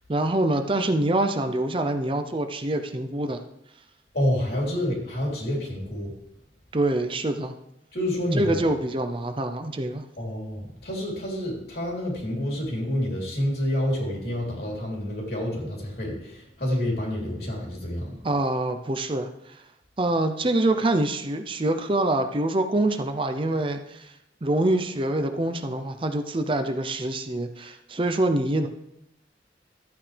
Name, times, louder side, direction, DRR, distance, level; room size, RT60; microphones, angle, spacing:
voice 1, 0.1-3.4 6.7-7.5 8.3-10.0 18.2-19.6 20.0-24.1 24.4-28.7, right 1 dB, 30° right, 7 dB, 0.6 m, -25 dB
voice 2, 4.1-6.1 7.9-8.6 10.2-18.2, left 1 dB, 60° left, -2 dB, 3.5 m, -28 dB
13.0 x 8.9 x 3.4 m, 0.81 s
head